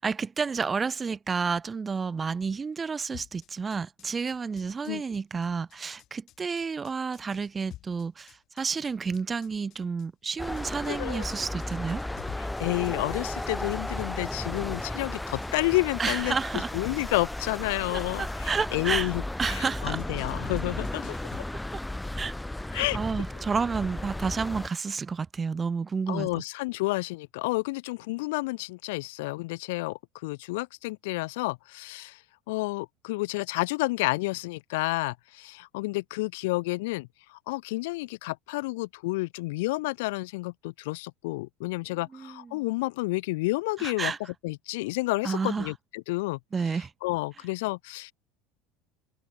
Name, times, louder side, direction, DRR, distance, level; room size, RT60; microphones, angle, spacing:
voice 1, 0.0-12.0 16.0-16.7 17.9-19.1 19.4-20.0 22.1-22.3 22.7-26.3 42.1-42.6 43.8-44.2 45.2-45.7 46.5-46.9, right 5 dB, 15° right, 0.4 m, -30 dB
sound 1, 3.1-21.4, left 13 dB, 40° left, 6.2 m, -49 dB
sound 2, 10.4-24.7, left 1 dB, 5° left, 0.9 m, -34 dB
voice 2, 10.9-11.3 12.6-21.2 22.7-23.0 26.1-32.2 32.5-44.1 44.4-46.4 47.0-48.1, left 22 dB, 85° left, 1.2 m, -30 dB
cardioid pair, 165°, 0 cm